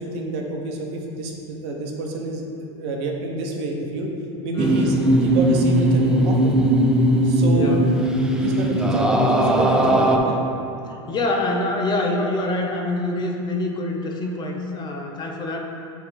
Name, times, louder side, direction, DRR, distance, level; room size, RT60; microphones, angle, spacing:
voice 1, 0.0-2.4 2.7-4.1 4.4-6.7 7.2-7.8 8.3-10.4, right 2 dB, 65° right, 0 dB, 0.9 m, -28 dB
voice 2, 4.5-5.2 7.5-7.8 10.9-15.6, left 2 dB, 30° left, 1 dB, 0.8 m, -26 dB
sound 1, 4.6-10.2, right 1 dB, 5° right, 0.5 m, -19 dB
6.7 x 3.4 x 4.4 m, 2.8 s
hypercardioid pair, 105°, 15 cm